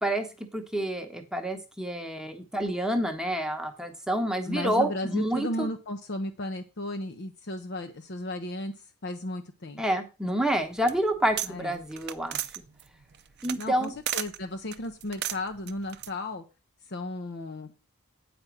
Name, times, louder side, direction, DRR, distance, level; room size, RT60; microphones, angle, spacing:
voice 1, 0.0-5.7 9.8-12.4 13.4-13.9, right 1 dB, 5° right, 4 dB, 1.0 m, -28 dB
voice 2, 4.5-9.8 11.5-11.8 13.6-16.4 16.9-17.7, left 1 dB, 50° left, 5 dB, 0.7 m, -35 dB
sound 1, 10.5-11.5 11.8-14.4 14.7-16.1, right 12 dB, 50° right, 0.5 m, -34 dB
8.8 x 5.1 x 5.9 m, 0.31 s
head